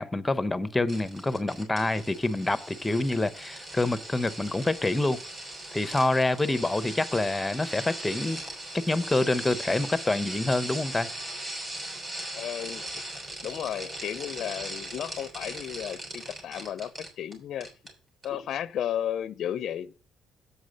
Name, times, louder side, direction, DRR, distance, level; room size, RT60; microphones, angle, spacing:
voice 1, 0.0-5.2 5.7-8.4 8.7-11.1 18.3-18.4, left 2 dB, 10° left, 0.7 m, -27 dB
sound 1, 0.9-17.3 17.6-17.9 18.2-18.3, right 1 dB, 35° right, 4.6 m, -39 dB
voice 2, 12.4-12.9 13.4-17.7 18.2-19.9, left 10 dB, 60° left, 0.4 m, -33 dB
8.3 x 6.3 x 5.2 m
cardioid pair, 125°, 0 cm